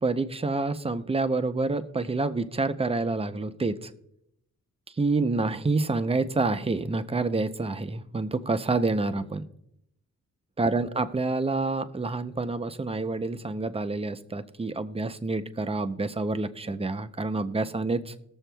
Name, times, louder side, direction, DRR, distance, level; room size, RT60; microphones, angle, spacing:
voice 1, 0.0-3.9 5.0-9.5 10.6-18.1, right 3 dB, 20° right, 10 dB, 0.5 m, -28 dB
20.0 x 7.1 x 2.2 m, 0.79 s
cardioid pair, 105°, 30 cm